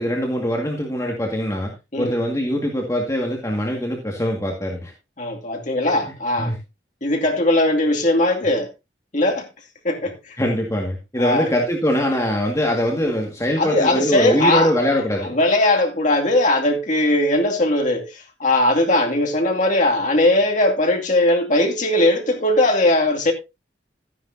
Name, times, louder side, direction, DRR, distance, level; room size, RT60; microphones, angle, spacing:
voice 1, 0.0-4.9 6.1-6.6 10.4-15.3, equal, 20° left, 1.9 m, -22 dB
voice 2, 5.2-6.5 7.0-8.7 9.1-9.5 9.8-10.2 11.2-11.5 13.6-14.7 15.2-23.3, left 1 dB, 45° left, 2.5 m, -19 dB
13.0 x 9.9 x 2.7 m
head